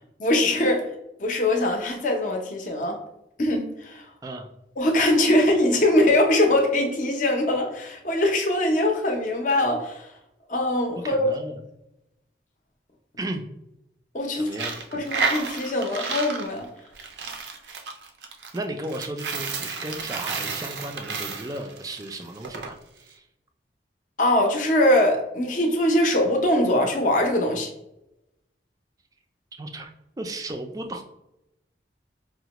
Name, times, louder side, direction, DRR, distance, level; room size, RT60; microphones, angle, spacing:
voice 1, 0.2-0.8 1.2-3.0 3.4-4.0 4.8-10.1 10.5-11.3 14.1-14.5 14.9-16.7 24.2-27.7, left 1 dB, 45° left, 2 dB, 0.5 m, -22 dB
voice 2, 11.0-11.6 13.2-13.4 14.3-15.0 18.5-23.3 29.6-29.9 30.2-31.0, right 1 dB, 20° right, 6 dB, 0.3 m, -35 dB
Coin (dropping), 14.5-22.7, right 4 dB, 80° right, 0.5 m, -31 dB
4.7 x 2.1 x 2.9 m, 0.88 s
head